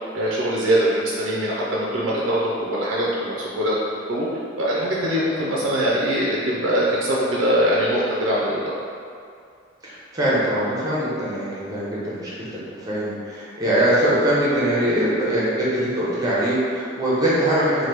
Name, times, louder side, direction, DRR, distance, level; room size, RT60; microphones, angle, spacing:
voice 1, 0.1-3.8 4.1-4.3 4.6-8.7, equal, 65° right, -6 dB, 0.5 m, -22 dB
voice 2, 9.8-17.9, right 1 dB, 20° right, -8 dB, 0.7 m, -22 dB
2.9 x 2.2 x 3.2 m, 2.4 s
head